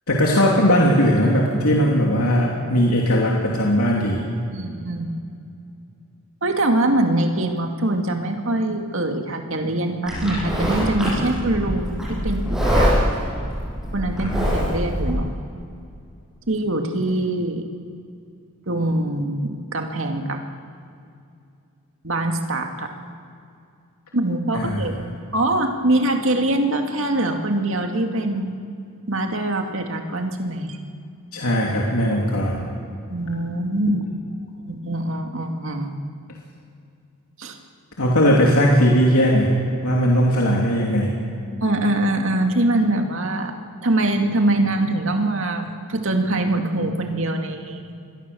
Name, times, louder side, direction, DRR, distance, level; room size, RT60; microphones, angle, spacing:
voice 1, 0.1-4.2 24.5-24.9 31.3-32.6 38.0-39.5 39.8-41.2, equal, 85° left, -2 dB, 3.1 m, -18 dB
voice 2, 4.5-5.1 6.4-13.2 13.9-15.3 16.5-17.6 18.7-20.4 22.0-22.9 24.1-25.0 25.3-28.6 29.1-30.8 33.1-34.0 34.7-35.9 37.4-37.6 41.6-43.5 43.8-47.9, right 1 dB, 60° right, 4 dB, 2.3 m, -23 dB
Livestock farm animals working animals, 10.1-15.1, equal, ahead, 7.5 m, -23 dB
27.0 x 21.5 x 7.1 m, 2.5 s
head